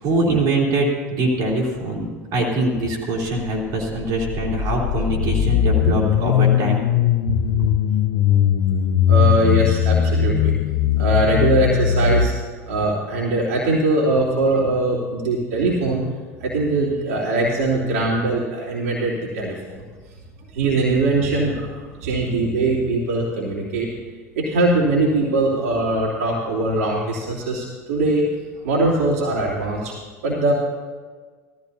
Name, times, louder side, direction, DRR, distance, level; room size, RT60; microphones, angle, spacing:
voice 1, 0.0-6.8, right 2 dB, 50° right, -3 dB, 3.3 m, -23 dB
sound 1, 3.9-12.3, left 9 dB, 55° left, 0.7 m, -19 dB
voice 2, 9.1-10.5 11.0-12.3 12.7-16.0 16.4-19.8 20.5-23.9 24.4-28.3 28.6-29.9 30.2-30.5, right 2 dB, 65° right, -6 dB, 3.0 m, -21 dB
17.5 x 14.5 x 2.8 m, 1.5 s
figure-of-eight pair, 75°, 8 cm